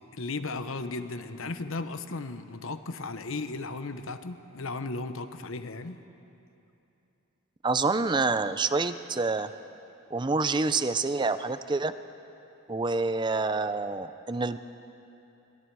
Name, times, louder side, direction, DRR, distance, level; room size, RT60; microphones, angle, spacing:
voice 1, 0.1-6.0, left 3 dB, 70° left, 10 dB, 1.0 m, -35 dB
voice 2, 7.6-9.5 10.1-11.9 12.7-14.6, right 3 dB, 20° right, 12 dB, 0.5 m, -27 dB
26.0 x 22.5 x 4.8 m, 2.8 s
head